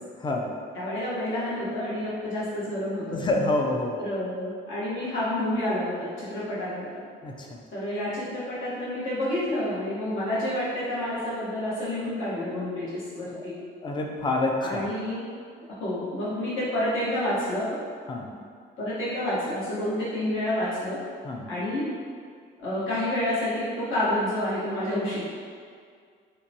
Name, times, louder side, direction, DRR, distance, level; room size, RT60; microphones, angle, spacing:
voice 1, 0.2-0.5 3.1-4.0 7.2-7.6 13.3-13.5 13.8-14.9 18.1-18.3 21.2-21.5, left 2 dB, 25° left, 0 dB, 0.4 m, -27 dB
voice 2, 0.7-3.2 4.0-6.9 7.7-13.5 14.6-15.2 15.7-17.8 18.8-21.0 21.5-21.8 22.6-25.3, left 1 dB, 80° left, -9 dB, 1.0 m, -29 dB
2.8 x 2.1 x 2.6 m, 2.1 s
cardioid pair, 90°, 20 cm